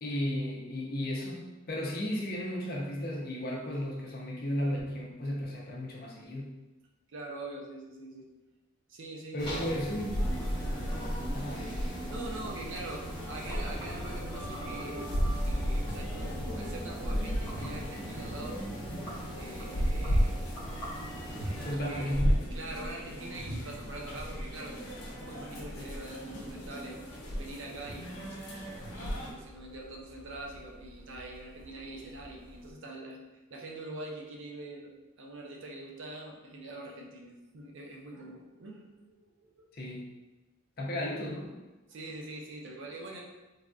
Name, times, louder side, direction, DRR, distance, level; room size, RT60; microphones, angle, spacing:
voice 1, 0.0-6.5 9.3-10.3 11.3-11.7 21.6-22.4 39.7-40.0 40.8-41.6, left 1 dB, 45° left, -2 dB, 0.5 m, -34 dB
voice 2, 7.1-8.3 8.9-9.8 12.1-15.1 15.5-18.6 19.4-20.4 21.3-22.1 22.5-24.8 25.0-27.0 27.3-28.1 28.9-33.2 33.5-34.9 35.2-39.2 39.4-39.7 41.9-43.2, right 2 dB, 60° right, 0 dB, 0.5 m, -44 dB
sound 1, 9.4-21.7, equal, 20° left, 1.0 m, -41 dB
sound 2, 10.1-29.3, equal, 85° left, 0.7 m, -34 dB
sound 3, 12.9-32.7, equal, 75° right, 0.9 m, -54 dB
3.3 x 2.5 x 2.3 m, 1.1 s
head